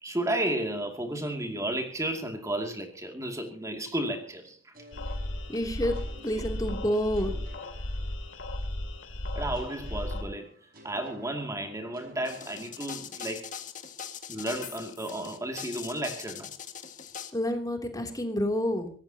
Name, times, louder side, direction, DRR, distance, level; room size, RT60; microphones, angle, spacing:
voice 1, 0.0-4.7 9.3-13.5 14.3-16.5, right 1 dB, 15° right, 4 dB, 2.5 m, -33 dB
sound 1, 4.7-8.7 9.5-13.4, left 1 dB, 45° right, 5.3 m, -54 dB
sound 2, 4.9-10.2, left 1 dB, 75° left, 2.9 m, -35 dB
voice 2, 5.5-7.3 17.3-18.9, equal, 20° left, 4 dB, 3.0 m, -29 dB
sound 3, 12.3-17.3, left 8 dB, 40° left, 1.9 m, -41 dB
24.0 x 18.0 x 2.9 m, 0.42 s
head